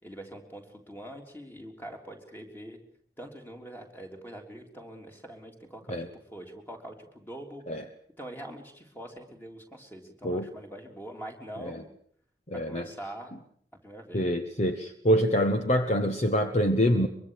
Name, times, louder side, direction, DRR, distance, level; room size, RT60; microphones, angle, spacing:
voice 1, 0.0-2.8 3.2-6.1 6.3-7.6 8.2-11.8 12.5-13.3 13.8-14.3, right 1 dB, 10° left, 2 dB, 3.6 m, -44 dB
voice 2, 12.5-12.9 14.1-17.1, equal, 40° left, 7 dB, 1.2 m, -25 dB
24.0 x 23.5 x 6.6 m, 0.63 s
head